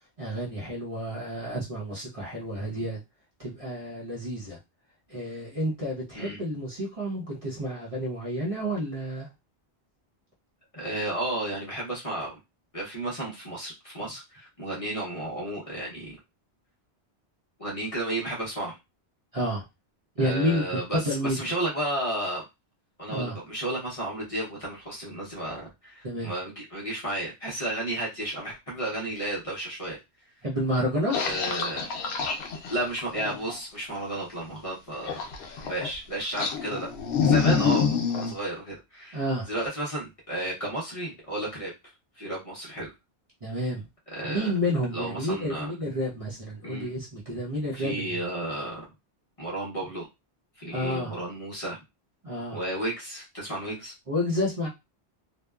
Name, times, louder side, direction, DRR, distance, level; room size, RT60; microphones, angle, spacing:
voice 1, 0.2-3.0 3.4-4.6 5.1-9.3 19.3-19.6 20.2-21.4 23.1-23.4 26.0-26.3 30.4-31.4 37.5-37.7 39.1-39.5 43.4-43.9 44.3-48.2 50.7-51.2 52.2-52.6 54.1-54.7, equal, 35° right, -5 dB, 0.8 m, -30 dB
voice 2, 10.7-12.4 12.7-16.1 17.6-18.8 20.2-22.4 23.0-30.0 31.2-31.9 32.7-35.2 35.6-36.9 37.2-39.2 39.5-41.7 42.2-42.9 44.1-44.5 44.9-45.7 46.6-46.9 47.7-48.8 49.4-50.1 50.6-51.8 52.5-53.9, right 1 dB, 35° left, -4 dB, 0.8 m, -33 dB
sound 1, 31.1-33.5 35.0-36.0 36.4-38.3, left 6 dB, 75° left, 0.8 m, -26 dB
2.7 x 2.1 x 2.3 m, 0.23 s
omnidirectional pair, 1.1 m